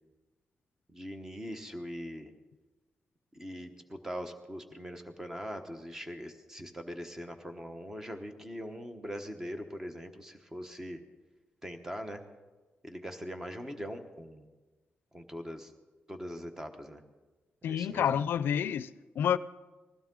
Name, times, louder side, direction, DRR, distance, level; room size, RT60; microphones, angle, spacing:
voice 1, 0.9-2.3 3.3-11.0 11.6-12.2 12.8-14.5 15.1-15.7 16.1-17.0 17.6-18.1, equal, 10° right, 1.1 m, -41 dB
voice 2, 17.6-19.4, left 9 dB, 75° left, 0.4 m, -29 dB
20.5 x 15.5 x 3.8 m
wide cardioid pair, 155°, 4 cm